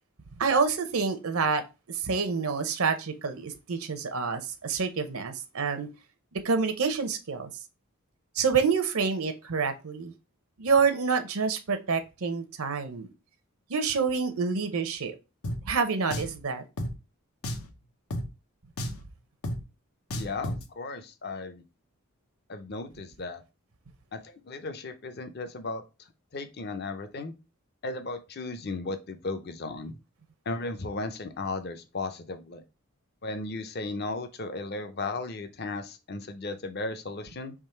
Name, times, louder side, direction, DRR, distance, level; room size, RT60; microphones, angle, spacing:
voice 1, 0.4-5.9 6.4-7.5 8.4-10.1 10.6-13.1 13.7-15.1 15.6-16.6 18.8-18.9, right 5 dB, 75° right, 9 dB, 0.7 m, -27 dB
Drum, 15.4-15.6 16.1-16.4 16.8-16.9 17.4-17.7 18.1-18.3 18.8-19.0 19.4-19.6 20.1-20.6, equal, 80° left, 0.7 m, -32 dB
voice 2, 20.1-21.6 22.5-23.4 24.1-25.8 26.3-27.3 27.8-30.0 30.5-32.6 33.2-37.5, left 3 dB, 45° left, 9 dB, 0.6 m, -35 dB
3.6 x 3.2 x 4.3 m, 0.28 s
head